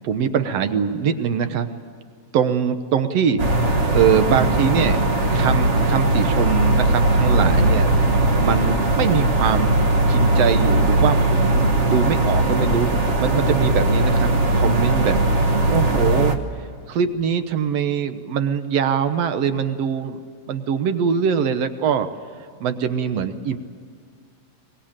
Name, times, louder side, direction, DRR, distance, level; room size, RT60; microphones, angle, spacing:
voice 1, 0.0-1.7 2.3-5.0 5.3-9.7 10.1-15.2 15.7-16.4 16.9-20.2 20.5-22.1 22.6-23.6, right 7 dB, 65° right, 10 dB, 2.0 m, -23 dB
sound 1, 3.4-16.4, right 2 dB, 45° right, 0.9 m, -19 dB
23.5 x 21.0 x 8.8 m, 2.2 s
omnidirectional pair, 3.3 m